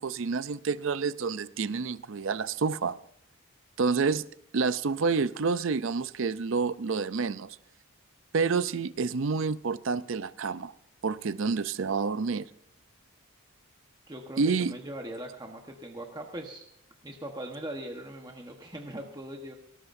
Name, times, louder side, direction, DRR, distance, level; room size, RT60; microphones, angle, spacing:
voice 1, 0.0-3.0 3.8-4.2 4.5-7.6 8.3-10.7 11.0-12.5 14.4-14.7, right 4 dB, 60° right, 15 dB, 0.5 m, -28 dB
voice 2, 14.1-16.6 17.0-19.5, right 1 dB, 20° right, 2 dB, 1.2 m, -40 dB
18.5 x 18.0 x 2.7 m, 0.72 s
head